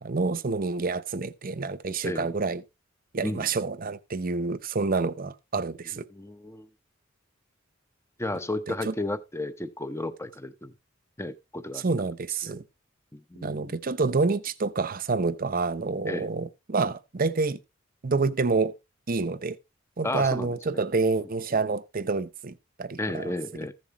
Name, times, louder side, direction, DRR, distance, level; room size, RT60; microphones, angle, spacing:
voice 1, 0.0-2.6 3.1-6.1 8.8-8.9 11.8-12.6 13.4-17.6 18.0-18.7 19.1-19.6 20.0-23.3, right 4 dB, 45° right, 0.7 m, -28 dB
voice 2, 6.1-6.7 8.2-10.8 11.2-11.9 12.4-12.6 13.1-13.7 16.1-16.3 20.0-20.8 23.0-23.7, left 2 dB, 15° left, 0.8 m, -33 dB
14.5 x 7.3 x 3.0 m
head